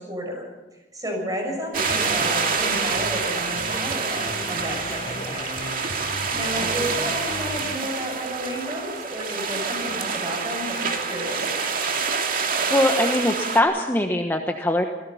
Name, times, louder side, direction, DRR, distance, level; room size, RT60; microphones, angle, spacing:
voice 1, 0.0-5.6 6.3-11.8, equal, 20° right, 1 dB, 6.9 m, -32 dB
sound 1, 1.7-7.8, left 2 dB, 30° left, 0.8 m, -36 dB
sound 2, 1.7-13.6, right 5 dB, 50° right, 2.3 m, -27 dB
voice 2, 12.7-14.8, left 1 dB, 10° left, 3 dB, 1.1 m, -22 dB
27.5 x 17.5 x 5.7 m, 1.1 s
head